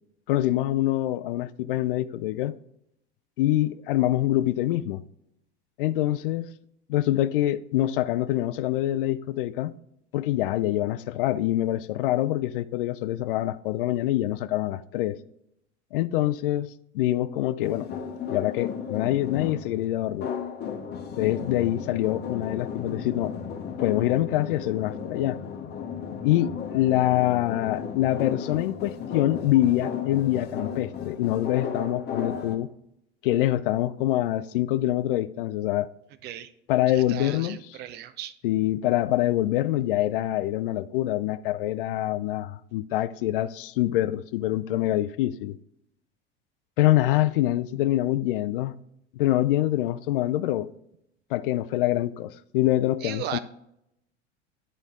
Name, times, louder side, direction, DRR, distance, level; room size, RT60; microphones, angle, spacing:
voice 1, 0.3-2.5 3.4-5.0 5.8-6.5 6.9-9.7 10.1-15.2 15.9-16.7 16.9-17.9 18.3-20.3 21.2-23.3 23.8-25.4 26.2-32.7 33.2-35.9 36.7-37.6 38.4-45.6 46.8-48.7 49.1-50.7 51.3-53.4, left 14 dB, 50° left, 0.4 m, -25 dB
sound 1, 17.6-32.6, left 7 dB, 30° left, 1.0 m, -34 dB
voice 2, 36.9-38.3 53.0-53.4, right 11 dB, 30° right, 0.4 m, -36 dB
10.5 x 4.4 x 3.6 m
figure-of-eight pair, 80°, 35 cm